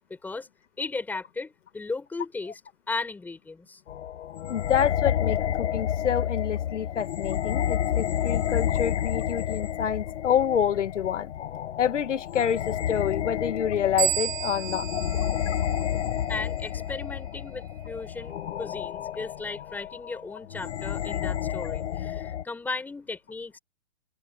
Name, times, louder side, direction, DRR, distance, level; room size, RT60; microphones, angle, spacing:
voice 1, 0.1-0.5 0.8-2.6 2.9-3.8 16.3-23.6, left 3 dB, 5° left, 6.7 m, -36 dB
sound 1, 3.9-22.4, left 10 dB, 70° left, 1.0 m, -30 dB
voice 2, 4.5-11.3 11.8-14.9, left 9 dB, 85° left, 1.9 m, -27 dB
sound 2, 14.0-16.5, right 12 dB, 45° right, 1.1 m, -32 dB
open air
hypercardioid pair, 170°, 35 cm